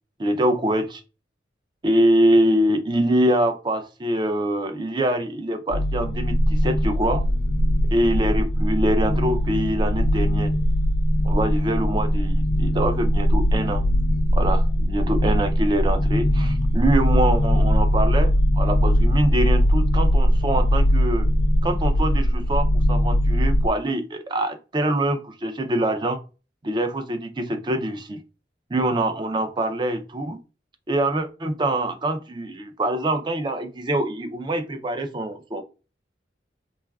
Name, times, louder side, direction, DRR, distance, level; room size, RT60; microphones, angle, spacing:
voice 1, 0.2-1.0 1.8-7.2 7.9-10.5 11.2-13.8 14.3-21.3 21.6-26.2 26.6-28.2 28.7-30.4 30.9-35.6, right 1 dB, 25° right, 7 dB, 0.4 m, -24 dB
sound 1, 5.7-23.7, equal, 70° left, 0.4 m, -20 dB
3.1 x 2.4 x 2.2 m, 0.32 s
head